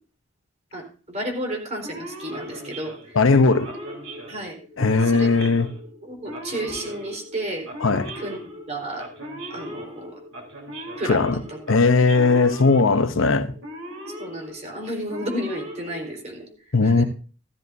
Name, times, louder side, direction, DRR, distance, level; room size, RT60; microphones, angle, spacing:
voice 1, 0.7-3.2 4.3-4.6 5.0-5.3 6.0-7.7 8.1-8.4 8.7-9.1 9.5-10.2 11.0-11.6 14.1-17.1, right 1 dB, 35° right, 4.2 m, -32 dB
Male speech man speaking / Siren, 1.8-16.6, equal, 85° right, 3.6 m, -38 dB
voice 2, 3.1-3.7 4.8-5.7 7.8-8.1 11.1-11.4 11.7-13.5 16.7-17.0, left 4 dB, 85° left, 0.8 m, -18 dB
15.5 x 13.5 x 2.7 m
head